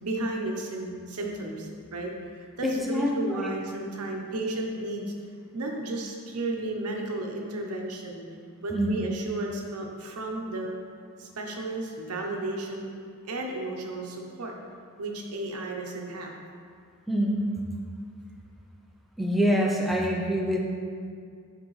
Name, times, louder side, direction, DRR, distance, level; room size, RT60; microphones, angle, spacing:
voice 1, 0.0-5.1 5.5-8.2 8.6-10.8 11.2-12.9 13.3-14.5 15.0-16.3, right 2 dB, 85° right, 1 dB, 0.8 m, -33 dB
voice 2, 2.6-3.5 8.7-9.0 17.1-17.6 19.2-20.6, equal, ahead, -3 dB, 0.5 m, -25 dB
7.7 x 4.5 x 3.2 m, 2.2 s
head